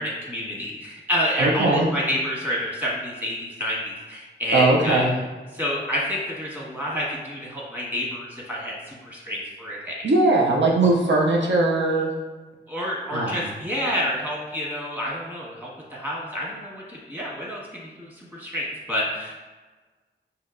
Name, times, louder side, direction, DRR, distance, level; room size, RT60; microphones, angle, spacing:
voice 1, 0.0-5.0 5.5-10.0 12.7-19.3, equal, 10° right, -5 dB, 1.5 m, -28 dB
voice 2, 1.4-1.9 4.5-5.1 10.0-12.1 13.1-13.5, right 2 dB, 70° right, -2 dB, 0.6 m, -20 dB
5.5 x 2.8 x 2.5 m, 1.3 s
cardioid pair, 50°, 20 cm